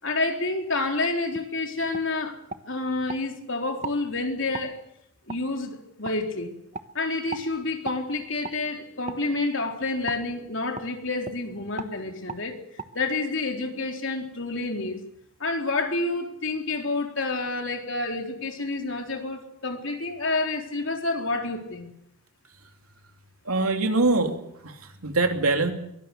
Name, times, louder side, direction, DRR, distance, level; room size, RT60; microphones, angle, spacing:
voice 1, 0.0-2.4 2.7-4.8 5.3-6.5 6.9-12.6 12.9-15.0 15.4-21.9, left 3 dB, 60° left, 3 dB, 4.0 m, -29 dB
sound 1, 1.3-1.5 1.9-2.1 2.5-3.2 3.8-4.0 4.5-4.7 5.3-5.4 6.0-6.2 6.7-6.9 7.3-7.5 7.8-8.0 8.4-8.6 9.1-9.2 10.1-10.2 10.8-10.9 11.2-11.4 11.8-11.9 12.3-12.4 12.8-12.9, right 4 dB, 30° right, 1.3 m, -36 dB
voice 2, 23.4-25.7, right 3 dB, 90° right, 5 dB, 3.1 m, -24 dB
23.5 x 18.5 x 6.8 m, 0.79 s
head